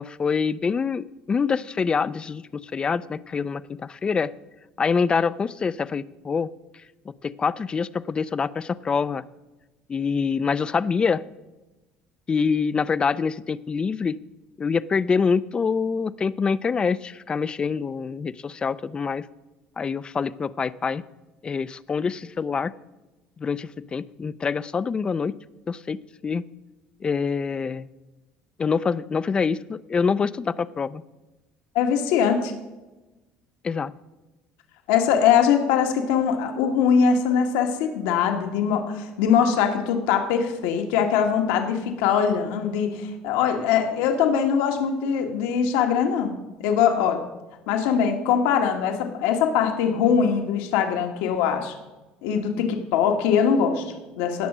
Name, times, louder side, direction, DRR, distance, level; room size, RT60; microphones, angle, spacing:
voice 1, 0.0-4.3 4.8-6.5 7.2-9.2 9.9-11.2 12.3-14.2 14.6-19.2 19.8-21.0 21.4-22.7 23.4-25.4 25.7-26.4 27.0-27.9 28.6-31.0 33.6-33.9, left 5 dB, 25° left, 17 dB, 0.4 m, -25 dB
voice 2, 31.7-32.5 34.9-46.4 46.6-47.2 47.7-51.7 52.2-54.5, left 7 dB, 85° left, 4 dB, 1.6 m, -22 dB
17.5 x 6.3 x 6.1 m, 1.1 s
supercardioid pair, 110°, 4 cm